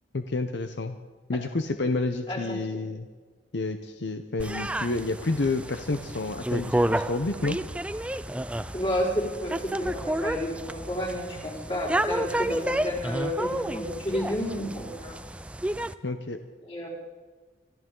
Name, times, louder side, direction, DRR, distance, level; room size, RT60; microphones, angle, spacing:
voice 1, 0.1-0.9 1.3-3.1 3.5-7.6 16.0-16.4, left 2 dB, 70° left, 7 dB, 0.8 m, -29 dB
voice 2, 2.3-2.8 8.7-15.2 16.6-16.9, equal, 30° left, -5 dB, 4.7 m, -31 dB
sound 1, 4.4-15.9, right 1 dB, 5° right, 0.4 m, -31 dB
26.0 x 13.5 x 3.8 m, 1.4 s
head